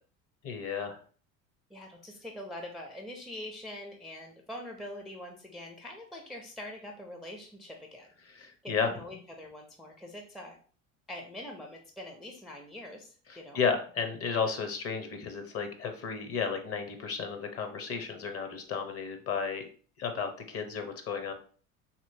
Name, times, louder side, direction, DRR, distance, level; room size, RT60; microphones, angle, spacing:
voice 1, 0.4-1.0 8.3-8.9 13.3-19.6 20.0-21.3, left 6 dB, 35° left, 6 dB, 0.7 m, -33 dB
voice 2, 1.7-8.1 8.6-10.6 11.1-13.6, left 1 dB, ahead, 1 dB, 0.4 m, -44 dB
2.9 x 2.8 x 2.7 m, 0.42 s
hypercardioid pair, 75°, 41 cm